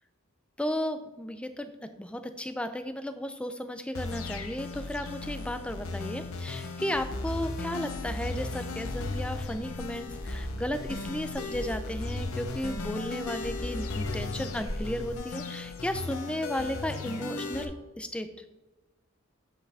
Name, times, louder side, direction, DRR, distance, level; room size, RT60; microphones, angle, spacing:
voice 1, 0.6-18.3, left 1 dB, 5° left, 9 dB, 0.4 m, -34 dB
sound 1, 4.0-17.7, left 3 dB, 85° left, 0.8 m, -36 dB
sound 2, 8.9-15.2, equal, 80° right, 2.7 m, -43 dB
8.0 x 5.8 x 3.4 m, 1.1 s
head